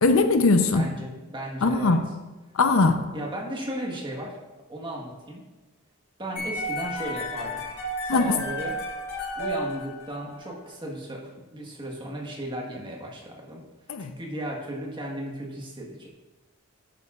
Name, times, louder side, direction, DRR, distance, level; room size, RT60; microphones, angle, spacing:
voice 1, 0.0-0.9 1.6-2.0 2.5-3.0 8.1-8.4 13.9-14.1, left 3 dB, 70° left, 8 dB, 0.7 m, -20 dB
voice 2, 0.7-2.0 3.1-4.4 4.7-5.4 6.2-7.6 8.0-8.8 9.3-13.7 14.0-16.1, right 1 dB, 20° right, -1 dB, 1.5 m, -35 dB
sound 1, 6.4-10.5, equal, 90° left, 2.9 m, -32 dB
11.0 x 10.0 x 2.5 m, 1.2 s
head